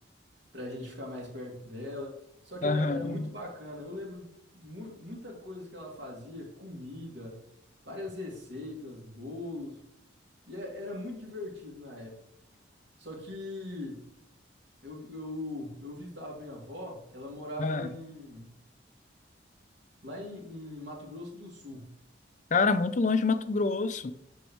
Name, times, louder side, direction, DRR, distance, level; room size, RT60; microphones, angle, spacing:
voice 1, 0.5-2.2 2.4-7.4 7.8-9.8 10.5-12.2 13.0-14.1 14.8-18.5 20.0-21.9, left 1 dB, 70° right, 2.7 m, -40 dB
voice 2, 2.6-3.3 17.6-17.9 22.5-24.1, left 4 dB, 40° left, 0.4 m, -27 dB
8.0 x 6.2 x 3.1 m
head